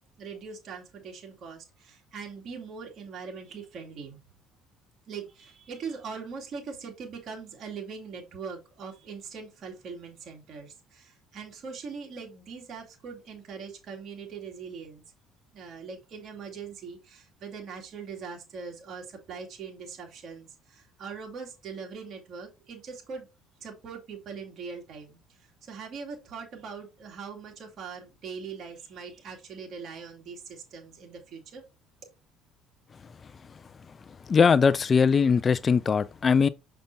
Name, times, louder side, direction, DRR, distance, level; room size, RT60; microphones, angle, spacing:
voice 1, 0.2-4.2 5.1-15.0 15.5-23.3 23.6-31.6, right 5 dB, 50° right, 2.5 m, -41 dB
voice 2, 34.3-36.5, left 5 dB, 30° left, 0.3 m, -21 dB
6.5 x 5.8 x 2.7 m
cardioid pair, 110°, 0 cm